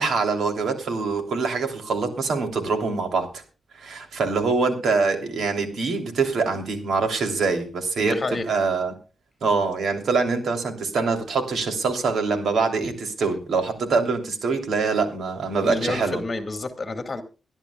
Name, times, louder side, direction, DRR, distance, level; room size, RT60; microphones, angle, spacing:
voice 1, 0.0-3.4 3.7-8.2 8.5-8.9 9.4-16.2, right 4 dB, 75° right, 5 dB, 3.3 m, -24 dB
voice 2, 8.0-8.5 15.6-17.2, left 3 dB, 30° left, 7 dB, 2.2 m, -29 dB
23.5 x 11.5 x 2.4 m, 0.33 s
wide cardioid pair, 125°, 0 cm